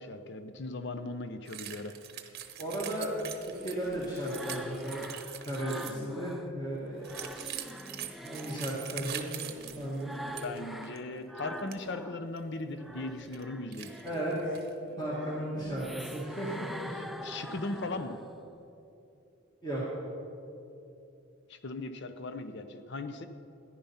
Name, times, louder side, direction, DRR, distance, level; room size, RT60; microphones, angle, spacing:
voice 1, 0.0-1.9 10.4-14.0 17.2-18.2 21.5-23.3, left 2 dB, 55° left, 9 dB, 0.7 m, -38 dB
sound 1, 1.5-6.1 7.0-10.6 10.8-11.0 11.4-11.8 12.4-12.5 13.0-13.4 13.7-14.8, right 10 dB, 50° right, 0.8 m, -43 dB
voice 2, 2.6-3.1 3.4-5.0 5.5-7.1 8.2-9.3 9.7-10.1 14.0-14.5 15.0-17.1 19.6-19.8, right 1 dB, 20° left, -6 dB, 1.9 m, -35 dB
sound 2, 3.1-6.5 6.9-12.2 12.6-18.5, equal, ahead, 0.4 m, -45 dB
14.0 x 10.5 x 5.7 m, 2.8 s
head